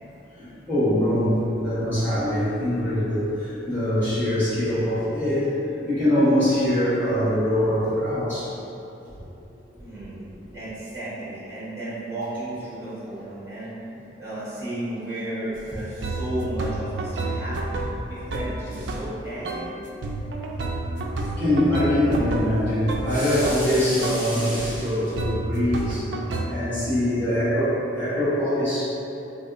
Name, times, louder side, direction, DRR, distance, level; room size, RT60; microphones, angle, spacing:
voice 1, 0.0-8.6 21.2-26.1 26.5-28.8, left 1 dB, 10° left, -14 dB, 1.2 m, -23 dB
voice 2, 9.8-13.7 14.2-17.8 18.1-19.7, right 1 dB, 15° right, -10 dB, 1.0 m, -34 dB
sound 1, 15.5-15.6 16.0-19.1 19.4-19.7 20.0-23.7 24.0-24.7 25.2-26.5, right 2 dB, 65° right, 0.3 m, -30 dB
3.5 x 2.6 x 2.4 m, 2.9 s
head